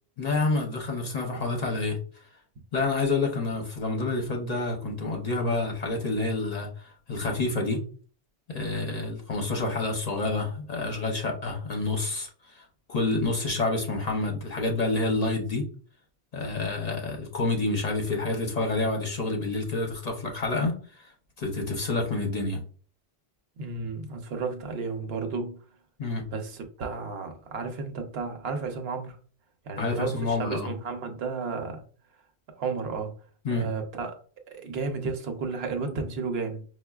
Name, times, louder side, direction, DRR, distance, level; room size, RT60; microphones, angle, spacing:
voice 1, 0.2-2.2 2.7-7.8 8.5-15.6 16.3-21.1 21.4-22.6 26.0-26.2 29.8-30.7 33.4-33.7, left 3 dB, 45° left, 0.7 m, -28 dB
voice 2, 23.6-25.6 26.3-29.2 29.6-31.8 32.6-33.1 33.5-34.1 34.5-36.6, right 4 dB, 75° right, 0.9 m, -33 dB
5.2 x 2.2 x 2.3 m
omnidirectional pair, 1.1 m